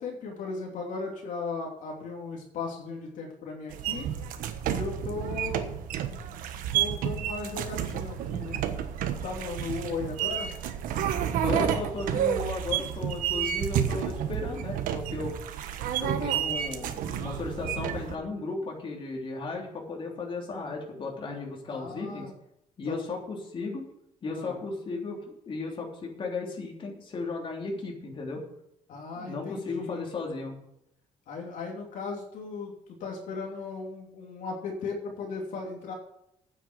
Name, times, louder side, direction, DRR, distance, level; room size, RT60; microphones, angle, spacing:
voice 1, 0.0-4.1 4.7-5.6 6.7-8.6 9.2-10.5 21.7-22.3 22.9-23.0 24.3-24.6 28.9-30.0 31.3-32.7 33.0-35.9, left 4 dB, 70° left, 0 dB, 2.9 m, -36 dB
sound 1, 3.7-18.1, right 9 dB, 90° right, 1.3 m, -30 dB
voice 2, 11.4-15.4 16.0-22.3 22.8-23.9 24.2-28.4 29.2-30.6, left 3 dB, 40° left, -1 dB, 3.4 m, -35 dB
9.2 x 8.0 x 8.1 m, 0.80 s
cardioid pair, 125°, 14 cm